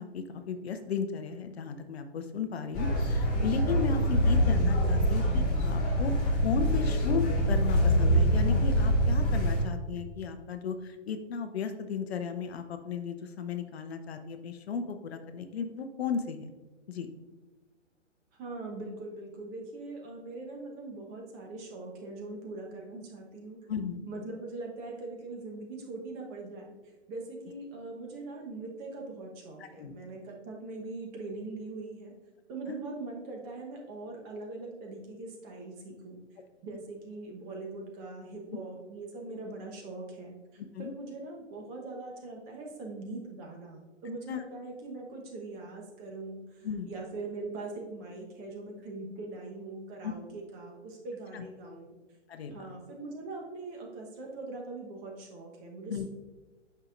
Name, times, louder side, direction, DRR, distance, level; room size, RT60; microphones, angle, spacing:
voice 1, 0.0-6.1 6.4-16.5 16.9-17.1 23.7-24.0 29.8-29.9 32.7-32.8 40.7-40.9 44.3-44.4 46.6-46.9 50.0-50.1 51.3-51.4 52.3-52.6 55.9-56.0, left 6 dB, 55° left, 8 dB, 0.7 m, -35 dB
sound 1, 2.7-9.6, equal, 20° left, 1.9 m, -25 dB
voice 2, 18.4-23.6 24.1-26.7 27.1-32.1 32.5-36.2 36.6-52.0 52.5-56.1, right 2 dB, 25° right, 0 dB, 1.1 m, -41 dB
8.6 x 5.7 x 2.5 m, 1.2 s
figure-of-eight pair, 125°, 37 cm